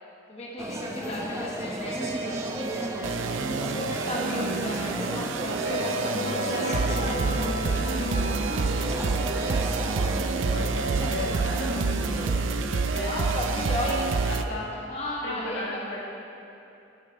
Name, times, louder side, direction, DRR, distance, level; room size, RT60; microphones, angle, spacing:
voice 1, 0.3-2.9 3.6-9.0 12.8-14.0 14.4-16.0, left 1 dB, 30° left, -4 dB, 1.0 m, -36 dB
sound 1, 0.6-12.4, equal, 15° right, 0.6 m, -34 dB
voice 2, 1.0-1.5 3.0-3.5 4.1-4.5 10.2-13.9 14.3-14.7 15.2-16.0, left 2 dB, 80° left, -4 dB, 1.7 m, -37 dB
sound 2, 1.9-14.4, right 4 dB, 85° right, 0.5 m, -28 dB
sound 3, 5.4-14.8, left 3 dB, 50° left, 0.5 m, -38 dB
12.5 x 7.4 x 4.3 m, 2.8 s
head